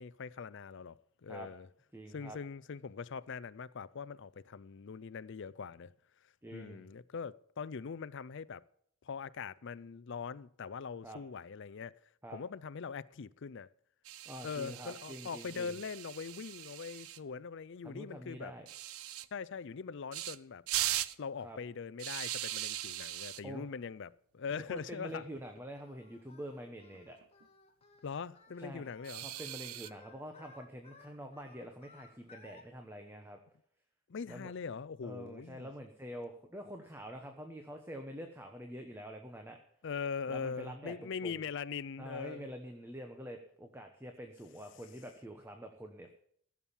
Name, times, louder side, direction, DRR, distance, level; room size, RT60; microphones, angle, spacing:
voice 1, 0.0-1.7 2.1-5.9 6.5-8.6 9.0-11.9 12.3-13.7 14.4-18.5 19.3-20.6 21.2-25.2 28.0-29.3 34.1-35.7 39.8-42.4, left 5 dB, 55° left, 0.4 m, -42 dB
voice 2, 1.9-2.4 6.4-6.9 11.0-11.2 12.2-12.4 14.3-15.7 17.8-18.7 21.4-21.6 23.4-23.7 24.7-27.2 28.6-33.4 34.3-34.5 35.0-39.6 40.3-41.4 42.0-46.1, equal, 10° right, 1.0 m, -46 dB
sound 1, 14.1-17.2 18.7-19.3 20.1-20.4 20.7-21.2 22.0-23.4 24.6-24.8 25.1-25.2 25.6-25.7 26.9-27.4 29.0-29.9, right 13 dB, 80° right, 0.6 m, -39 dB
Singing, 25.7-32.6, left 3 dB, 30° left, 1.9 m, -59 dB
15.5 x 7.3 x 7.1 m
head